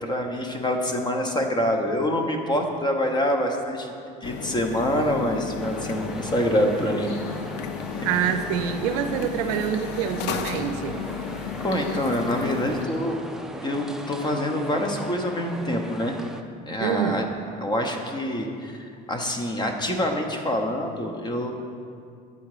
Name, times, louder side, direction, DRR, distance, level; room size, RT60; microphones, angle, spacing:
voice 1, 0.0-3.9 4.2-7.1 11.6-13.2 13.6-16.2 16.7-17.2 17.6-21.5, left 1 dB, 20° left, 3 dB, 0.8 m, -26 dB
sound 1, 4.2-12.9, left 7 dB, 65° left, 0.4 m, -34 dB
sound 2, 5.6-16.4, right 1 dB, 5° right, 0.3 m, -39 dB
sound 3, 7.0-7.4 8.0-8.4 9.5-9.9 10.5-10.8 11.6-12.1 12.8-13.0, left 4 dB, 80° left, 0.8 m, -47 dB
voice 2, 8.0-11.0 16.8-17.3, right 9 dB, 85° right, 8 dB, 0.4 m, -26 dB
8.4 x 3.7 x 4.8 m, 2.3 s
supercardioid pair, 95°, 20 cm